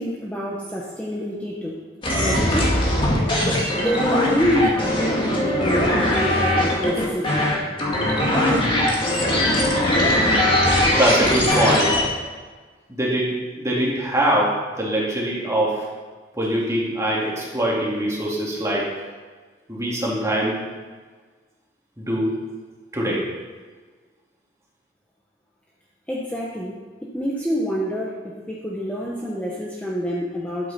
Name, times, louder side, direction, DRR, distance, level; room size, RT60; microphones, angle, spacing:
voice 1, 0.0-1.8 2.2-2.8 3.8-7.6 26.1-26.8 27.0-30.7, equal, 10° left, -5 dB, 1.1 m, -27 dB
sound 1, 2.0-12.0, left 1 dB, 30° left, 2.1 m, -20 dB
voice 2, 11.0-12.1 12.9-15.9 16.3-19.0 19.7-20.7 22.0-22.4 22.9-23.3, right 1 dB, 15° right, -5 dB, 2.6 m, -23 dB
12.0 x 8.7 x 4.3 m, 1.4 s
head